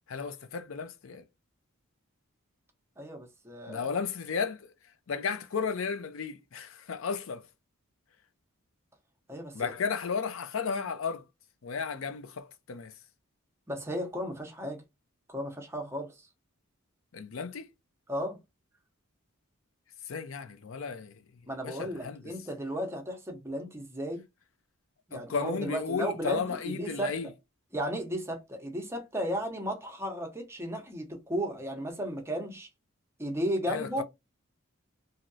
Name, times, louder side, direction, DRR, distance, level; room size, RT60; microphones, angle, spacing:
voice 1, 0.1-1.2 3.7-4.7 5.1-7.5 9.5-11.2 11.6-12.9 17.1-17.7 20.1-21.2 21.6-22.2 25.1-27.3 33.7-34.0, left 5 dB, 65° left, 0.5 m, -34 dB
voice 2, 3.0-3.9 9.3-9.7 13.7-14.8 15.3-16.3 18.1-18.4 21.4-24.2 25.1-27.1 27.7-32.7 33.2-34.0, equal, 10° right, 0.6 m, -34 dB
3.0 x 2.7 x 2.6 m
head